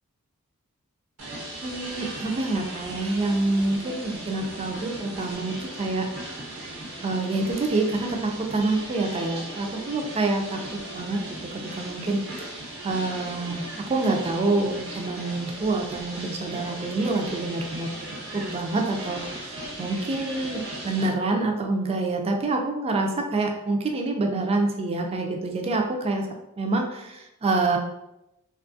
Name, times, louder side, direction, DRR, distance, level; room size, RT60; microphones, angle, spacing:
sound 1, 1.2-21.1, right 1 dB, 90° right, 1.0 m, -38 dB
voice 1, 1.6-6.1 7.0-12.2 12.8-17.9 18.3-26.3 26.6-27.8, right 2 dB, 25° right, 2 dB, 0.3 m, -27 dB
2.7 x 2.3 x 2.6 m, 0.90 s
head